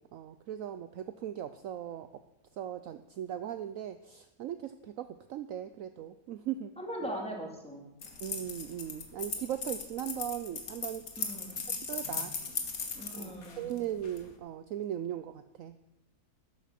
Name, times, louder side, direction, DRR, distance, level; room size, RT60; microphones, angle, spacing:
voice 1, 0.1-2.1 2.5-6.7 7.0-7.1 8.2-11.0 11.7-12.3 13.1-15.8, right 11 dB, 65° right, 11 dB, 0.9 m, -38 dB
voice 2, 6.8-7.9 11.2-11.6 12.9-13.7, equal, 5° left, -1 dB, 2.8 m, -40 dB
sound 1, 8.0-14.3, left 5 dB, 65° left, 2.0 m, -38 dB
13.0 x 9.9 x 5.9 m, 0.93 s
omnidirectional pair, 1.7 m